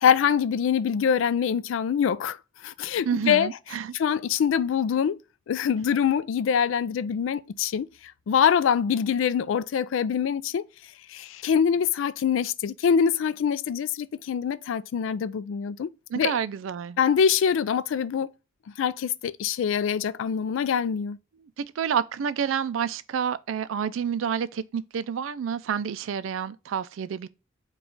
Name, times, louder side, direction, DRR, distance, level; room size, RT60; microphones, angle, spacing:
voice 1, 0.0-2.4 2.6-3.5 3.9-5.2 5.5-7.9 8.3-10.6 11.1-16.4 17.0-18.3 18.8-21.2, left 7 dB, 75° left, 0.3 m, -24 dB
voice 2, 3.1-3.9 16.1-17.0 21.6-27.3, right 7 dB, 85° right, 0.4 m, -29 dB
4.9 x 2.4 x 3.7 m
head